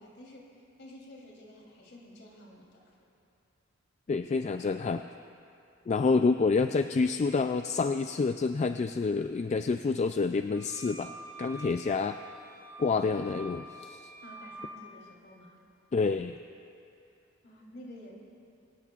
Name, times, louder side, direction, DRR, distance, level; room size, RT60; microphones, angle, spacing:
voice 1, 0.0-2.9 14.2-15.6 17.4-18.1, left 1 dB, 60° left, -3 dB, 3.4 m, -50 dB
voice 2, 4.1-5.0 5.9-11.1 11.4-12.2 12.8-14.1 15.9-16.4, left 4 dB, 35° left, 8 dB, 0.3 m, -28 dB
sound 1, 10.5-14.7, right 2 dB, 70° right, 2.6 m, -47 dB
22.5 x 19.0 x 2.4 m, 2.7 s
head